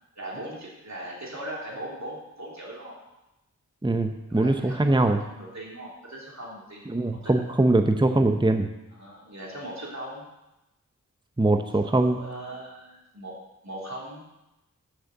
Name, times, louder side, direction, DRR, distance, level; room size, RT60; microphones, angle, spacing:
voice 1, 0.2-3.0 4.3-7.6 8.9-10.2 11.8-13.3 13.6-14.2, right 1 dB, 55° right, -4 dB, 3.2 m, -39 dB
voice 2, 3.8-5.2 6.9-8.7 11.4-12.2, right 2 dB, 15° right, 6 dB, 0.8 m, -22 dB
6.8 x 6.3 x 7.2 m, 0.94 s
cardioid pair, 40°, 33 cm